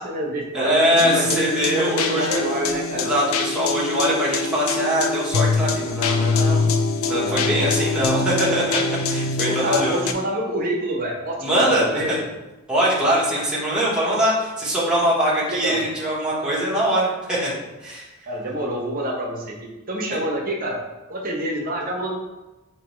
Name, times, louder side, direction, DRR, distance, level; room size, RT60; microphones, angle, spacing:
voice 1, 0.0-3.1 7.1-7.9 8.2-8.3 9.4-12.3 15.5-15.8 18.2-20.8 21.1-22.1, right 1 dB, 40° right, -1 dB, 0.9 m, -27 dB
voice 2, 0.5-2.3 2.9-6.6 7.1-8.8 9.1-10.0 11.4-12.2 12.7-17.6 17.8-18.1 20.1-20.2, equal, 5° right, -8 dB, 1.2 m, -22 dB
sound 1, 1.0-10.1, left 4 dB, 80° left, 0.4 m, -24 dB
4.8 x 2.9 x 3.1 m, 1.1 s
head